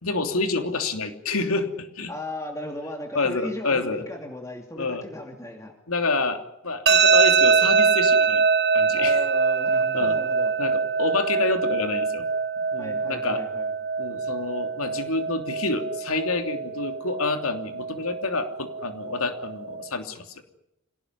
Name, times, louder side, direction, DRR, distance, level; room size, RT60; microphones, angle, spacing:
voice 1, 0.0-2.1 3.1-4.0 4.8-5.0 5.9-6.4 6.6-8.4 8.7-9.2 9.9-10.2 10.6-12.3 12.6-13.4 14.0-20.4, left 3 dB, 75° left, 7 dB, 3.1 m, -28 dB
voice 2, 2.1-5.7 9.0-10.5 12.8-13.7, left 1 dB, 15° left, 2 dB, 2.6 m, -36 dB
sound 1, 6.9-19.8, right 5 dB, 50° right, 1.2 m, -23 dB
25.5 x 18.0 x 9.7 m, 0.87 s
head